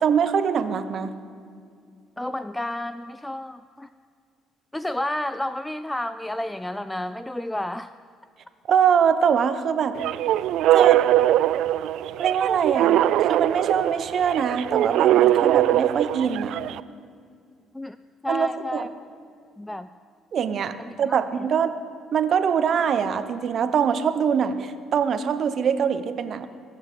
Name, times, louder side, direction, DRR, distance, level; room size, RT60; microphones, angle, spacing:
voice 1, 0.0-1.1 8.7-10.0 10.7-11.0 12.2-16.6 18.3-18.9 20.3-21.7 22.1-26.5, right 7 dB, 55° right, 11 dB, 0.9 m, -23 dB
voice 2, 2.2-3.9 4.7-7.9 17.7-18.0 18.2-18.9 19.6-19.9 20.8-21.2, left 1 dB, 10° left, 13 dB, 0.4 m, -31 dB
sound 1, 10.0-16.8, right 13 dB, 75° right, 0.4 m, -21 dB
20.5 x 7.3 x 8.3 m, 2.3 s
cardioid pair, 100°, 0 cm